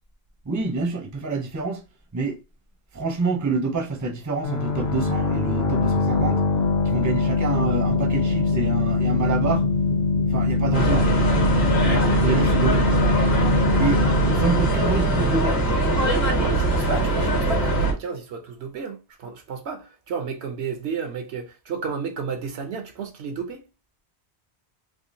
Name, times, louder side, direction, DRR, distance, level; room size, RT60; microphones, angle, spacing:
voice 1, 0.5-1.8 2.1-2.4 2.9-6.4 6.8-9.7 10.3-11.2 12.2-12.9 13.8-15.6, right 3 dB, 20° right, 0.6 m, -27 dB
sound 1, 4.4-15.9, left 4 dB, 25° left, 0.4 m, -23 dB
sound 2, 7.5-16.1, equal, 80° left, 1.4 m, -39 dB
sound 3, 10.7-17.9, right 2 dB, 65° left, 1.5 m, -21 dB
voice 2, 16.4-23.6, right 5 dB, 70° right, 1.0 m, -32 dB
3.6 x 3.2 x 2.6 m
omnidirectional pair, 1.2 m